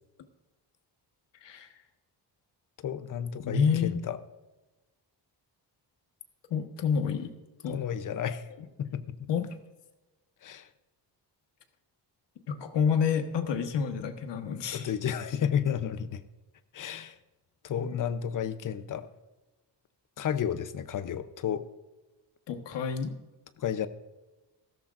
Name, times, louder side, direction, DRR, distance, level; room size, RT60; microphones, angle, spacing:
voice 1, 2.8-4.2 7.7-8.5 8.8-9.3 10.4-10.7 14.7-16.2 16.7-17.2 17.6-19.1 20.2-21.6 23.6-23.9, left 8 dB, 50° left, 12 dB, 0.8 m, -32 dB
voice 2, 3.4-4.0 6.5-7.3 7.6-7.8 9.3-9.6 12.5-14.9 17.7-18.1 22.5-23.1, left 6 dB, 80° left, 7 dB, 1.4 m, -29 dB
16.0 x 13.5 x 2.6 m, 1.1 s
wide cardioid pair, 180°, 42 cm